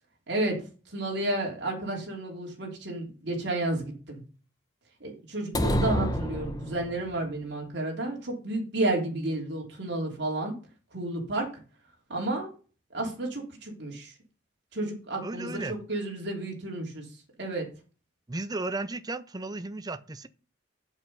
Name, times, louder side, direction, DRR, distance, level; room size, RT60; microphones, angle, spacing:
voice 1, 0.3-0.6 0.9-4.2 5.0-10.5 10.9-11.5 12.1-12.5 12.9-14.1 14.7-17.0 17.4-17.6, right 2 dB, 60° right, 3.2 m, -31 dB
sound 1, 5.5-7.1, equal, 20° left, 0.8 m, -28 dB
voice 2, 15.2-15.8 18.3-20.3, right 2 dB, 20° right, 0.5 m, -34 dB
8.0 x 7.2 x 5.4 m
head